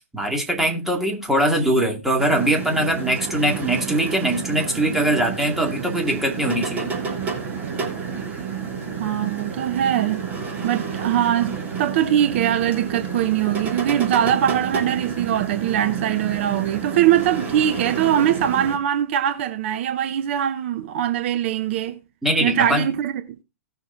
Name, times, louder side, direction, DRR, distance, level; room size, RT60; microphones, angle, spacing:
voice 1, 0.1-6.9 22.2-22.9, right 1 dB, 5° right, 2.4 m, -22 dB
sound 1, 2.2-18.8, right 6 dB, 20° right, 2.9 m, -30 dB
voice 2, 9.0-10.2 10.6-22.0 22.4-23.1, right 10 dB, 55° right, 0.9 m, -22 dB
18.0 x 6.2 x 2.7 m
figure-of-eight pair, 110°, 8 cm